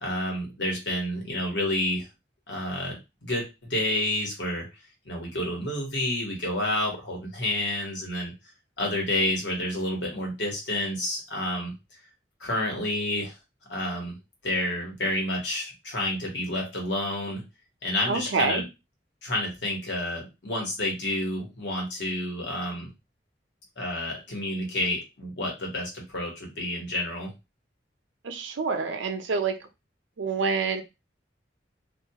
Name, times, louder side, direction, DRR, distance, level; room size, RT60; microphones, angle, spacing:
voice 1, 0.0-2.1 2.5-4.7 5.0-8.3 8.8-11.7 12.4-13.4 13.7-14.2 14.4-17.4 17.8-18.6 19.2-22.9 23.8-27.3, left 1 dB, 70° left, 0 dB, 1.2 m, -29 dB
voice 2, 18.1-18.6 28.2-29.6 30.2-30.8, right 4 dB, 90° right, 6 dB, 0.5 m, -27 dB
2.4 x 2.3 x 2.8 m, 0.24 s
head